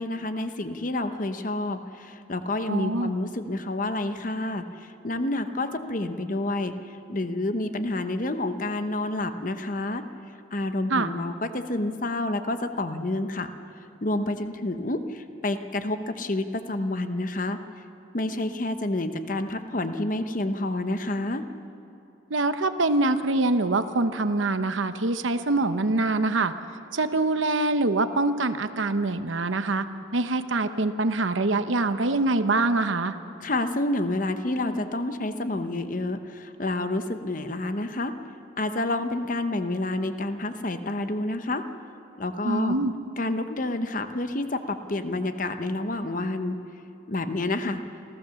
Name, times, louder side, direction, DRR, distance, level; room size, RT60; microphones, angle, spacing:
voice 1, 0.0-10.1 10.5-13.5 14.0-17.6 18.1-21.5 33.4-38.1 38.6-41.6 42.2-42.8 43.2-46.6 47.1-47.8, left 2 dB, 45° left, 9 dB, 0.9 m, -29 dB
voice 2, 2.7-3.1 10.9-11.1 22.3-26.5 26.9-33.1 42.4-42.9, right 2 dB, 90° right, 10 dB, 1.0 m, -24 dB
28.0 x 14.5 x 7.1 m, 2.8 s
head